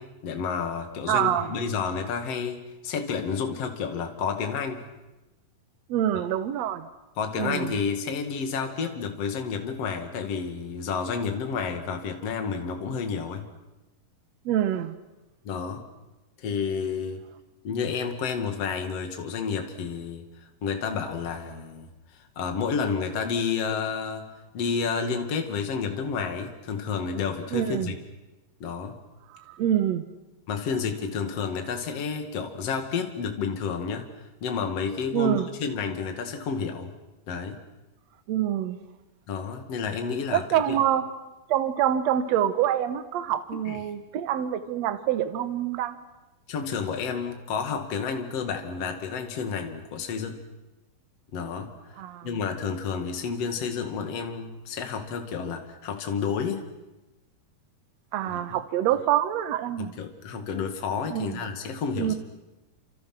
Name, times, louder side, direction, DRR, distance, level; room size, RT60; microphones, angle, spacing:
voice 1, 0.0-4.9 7.2-13.4 15.4-15.8 16.4-17.2 17.6-20.3 20.6-24.3 24.5-28.0 28.6-29.0 30.5-36.9 37.3-37.6 39.3-40.8 43.6-43.8 46.5-50.4 51.3-56.7 58.3-58.6 59.8-62.1, left 6 dB, 45° left, 5 dB, 2.9 m, -30 dB
voice 2, 1.1-1.6 5.9-6.9 7.4-7.7 14.5-15.0 27.5-28.0 29.3-30.0 35.1-35.5 38.3-38.8 40.3-41.1 41.5-46.0 52.0-52.4 58.1-59.9 61.1-61.4 62.0-62.1, right 11 dB, 60° right, 10 dB, 2.0 m, -26 dB
29.5 x 27.0 x 6.2 m, 1.0 s
omnidirectional pair, 4.3 m